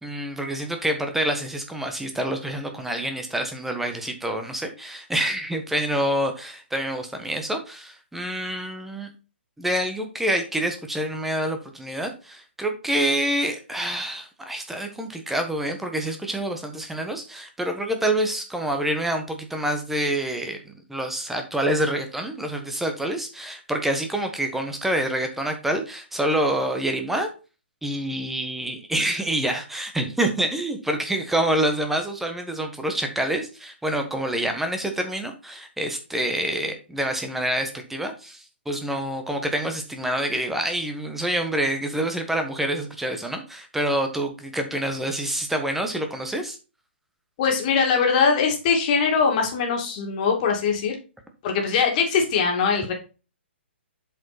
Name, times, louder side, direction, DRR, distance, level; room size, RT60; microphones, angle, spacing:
voice 1, 0.0-9.1 9.6-27.3 27.8-46.6, right 1 dB, 5° right, 5 dB, 1.2 m, -27 dB
voice 2, 47.4-50.9 51.4-52.9, left 5 dB, 40° left, 1 dB, 2.5 m, -21 dB
7.7 x 5.1 x 4.3 m, 0.33 s
figure-of-eight pair, 130°, 7 cm